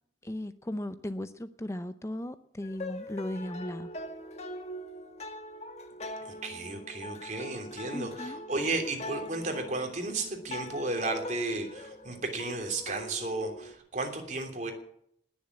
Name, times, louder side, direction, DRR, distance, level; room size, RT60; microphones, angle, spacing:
voice 1, 0.2-3.9 7.9-8.5, left 1 dB, 15° left, 12 dB, 0.5 m, -37 dB
sound 1, 2.6-13.7, left 1 dB, 40° left, 1.5 m, -42 dB
voice 2, 6.2-14.7, right 2 dB, 45° right, 4 dB, 3.1 m, -34 dB
19.5 x 7.2 x 9.6 m, 0.68 s
head